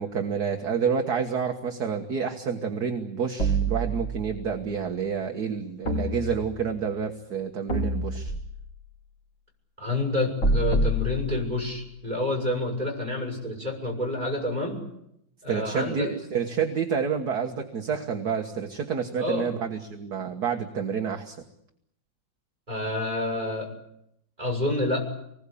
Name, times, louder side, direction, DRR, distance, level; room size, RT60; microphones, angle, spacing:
voice 1, 0.0-8.3 15.5-21.4, right 6 dB, 55° right, 4 dB, 2.0 m, -29 dB
sound 1, 3.4-4.5 5.9-6.8 7.7-8.8 10.4-11.8, right 1 dB, 65° left, 4.3 m, -27 dB
voice 2, 9.8-14.8 15.4-16.1 19.2-19.5 22.7-23.7 24.4-25.0, left 2 dB, 20° right, 0 dB, 6.7 m, -28 dB
26.0 x 20.5 x 8.6 m, 0.79 s
omnidirectional pair, 2.1 m